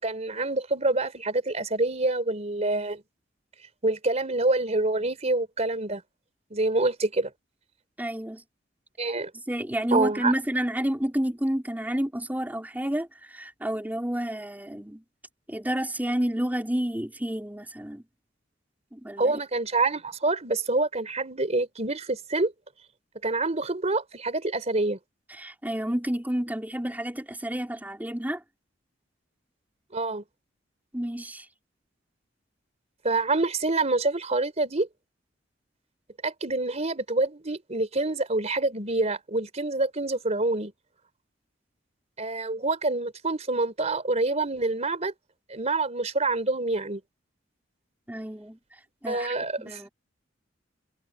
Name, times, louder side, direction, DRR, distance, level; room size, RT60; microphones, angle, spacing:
voice 1, 0.0-3.0 3.8-6.0 6.5-7.3 9.0-9.3 9.9-10.3 19.2-22.5 23.2-25.0 29.9-30.2 33.0-34.9 36.2-40.7 42.2-45.1 45.5-47.0 49.1-49.9, right 2 dB, 35° right, 3.8 m, -26 dB
voice 2, 8.0-8.4 9.5-15.0 15.5-18.0 18.9-19.3 25.4-28.4 30.9-31.4 48.1-48.6 49.0-49.3 49.6-49.9, equal, 10° right, 4.1 m, -30 dB
head